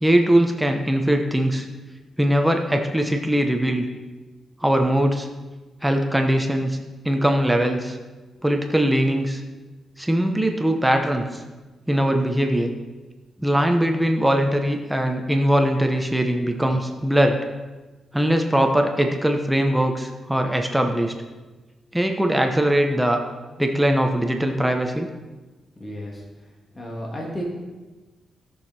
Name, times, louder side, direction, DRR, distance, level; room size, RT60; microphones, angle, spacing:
voice 1, 0.0-1.7 2.2-3.9 4.6-5.3 5.8-6.8 7.0-8.0 8.4-9.4 10.0-11.4 11.9-12.7 13.4-17.4 18.1-21.1 21.9-23.2 23.6-25.1, right 1 dB, 5° right, 4 dB, 1.0 m, -21 dB
voice 2, 25.8-26.2 26.7-27.4, equal, 20° left, -3 dB, 2.5 m, -32 dB
18.0 x 6.6 x 4.4 m, 1.2 s
cardioid pair, 100°, 0 cm